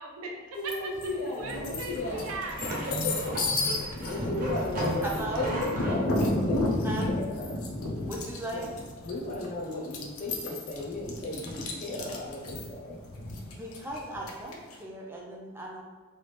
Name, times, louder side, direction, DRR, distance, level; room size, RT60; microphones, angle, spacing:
voice 1, 0.0-0.9 1.3-2.9 3.7-3.8, right 3 dB, 80° right, 2 dB, 0.5 m, -38 dB
voice 2, 0.5-2.2 3.0-3.2 4.0-5.0 5.4-7.9 8.5-8.7 9.0-13.0, left 1 dB, 40° left, -2 dB, 0.6 m, -35 dB
sound 1, 0.7-1.1 1.5-14.8, left 2 dB, 85° left, 0.5 m, -32 dB
sound 2, 1.4-6.0, equal, 40° right, 0.8 m, -34 dB
voice 3, 5.0-5.4 6.8-7.1 8.1-8.7 13.5-15.8, right 1 dB, 10° right, -2 dB, 0.4 m, -37 dB
3.1 x 2.3 x 3.2 m, 1.5 s
head